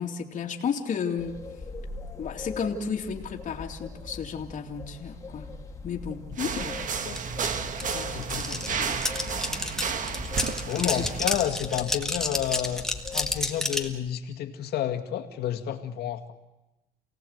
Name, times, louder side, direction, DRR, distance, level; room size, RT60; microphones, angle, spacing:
voice 1, 0.0-1.4 2.2-5.6 5.8-6.7 7.9-9.0 10.8-11.0, left 6 dB, 50° left, 1 dB, 2.5 m, -33 dB
sound 1, 1.2-13.5, left 4 dB, 20° left, 2.7 m, -41 dB
sound 2, 6.4-11.4, right 6 dB, 50° right, 1.5 m, -32 dB
sound 3, 7.2-7.3 7.4-13.9, left 1 dB, 5° left, 1.9 m, -30 dB
voice 2, 8.1-8.8 10.6-12.8 13.1-16.3, left 10 dB, 70° left, 6 dB, 2.2 m, -30 dB
28.5 x 18.0 x 8.0 m, 0.99 s
cardioid pair, 110°, 17 cm